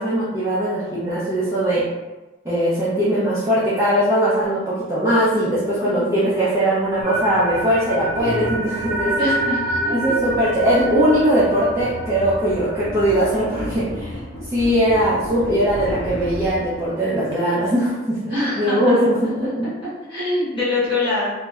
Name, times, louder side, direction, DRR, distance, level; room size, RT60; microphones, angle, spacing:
voice 1, 0.0-1.8 2.4-9.3 9.9-14.2 14.5-19.6, equal, 15° right, -11 dB, 0.5 m, -20 dB
sound 1, 5.7-5.8 6.7-17.4, equal, 50° left, 0.7 m, -34 dB
sound 2, 7.0-13.1, right 1 dB, 35° right, 1.0 m, -27 dB
voice 2, 9.2-9.9 18.3-19.0 20.1-21.3, left 2 dB, 25° left, -11 dB, 1.4 m, -24 dB
2.7 x 2.1 x 2.3 m, 1.1 s
head